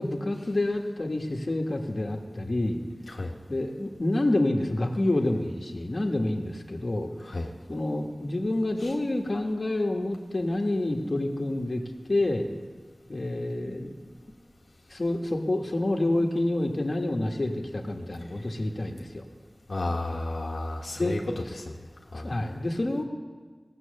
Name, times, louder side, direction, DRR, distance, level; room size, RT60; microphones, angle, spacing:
voice 1, 0.0-2.8 3.5-7.1 7.7-11.8 12.1-12.5 13.1-13.9 14.9-19.2 21.0-21.1 22.1-23.0, left 1 dB, 55° left, 2 dB, 1.4 m, -28 dB
voice 2, 19.7-21.2 21.6-21.8 22.1-22.3, left 2 dB, 80° left, 0 dB, 1.2 m, -32 dB
17.0 x 7.8 x 6.5 m, 1.5 s
wide cardioid pair, 60°, 0 cm